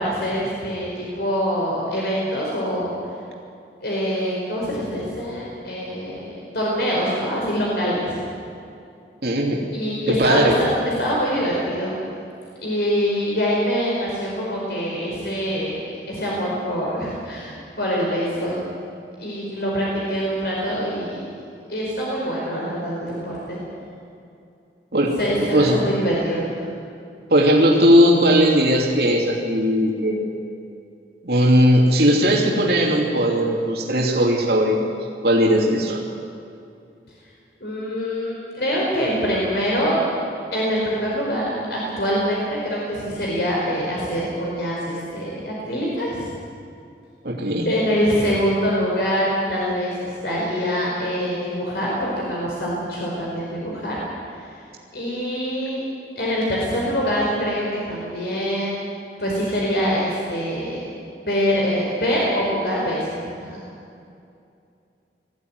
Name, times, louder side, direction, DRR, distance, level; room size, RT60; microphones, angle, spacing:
voice 1, 0.0-2.9 3.8-8.2 9.7-11.9 12.6-18.6 19.2-21.3 21.7-23.6 25.2-26.5 37.6-40.0 40.5-46.3 47.6-53.9 54.9-55.8 56.1-58.8 59.2-60.8 61.2-63.2 63.5-63.6, equal, 70° left, -4 dB, 4.9 m, -24 dB
voice 2, 9.2-9.6 10.1-10.6 24.9-25.2 25.5-25.8 27.3-30.3 31.2-35.0 35.2-36.0 47.2-47.7, equal, 65° right, -2 dB, 2.9 m, -18 dB
21.0 x 15.5 x 9.5 m, 2.5 s
head